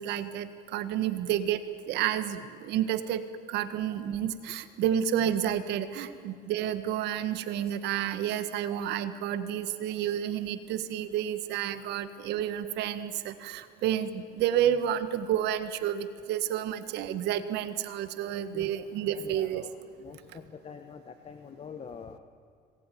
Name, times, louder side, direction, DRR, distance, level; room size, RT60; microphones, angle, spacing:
voice 1, 0.0-1.6 1.9-3.2 3.5-19.6 20.3-20.4, right 10 dB, 85° right, 11 dB, 1.6 m, -30 dB
voice 2, 19.1-22.2, left 6 dB, 35° left, 7 dB, 1.4 m, -45 dB
26.5 x 20.5 x 9.3 m, 2.3 s
cardioid pair, 110°, 17 cm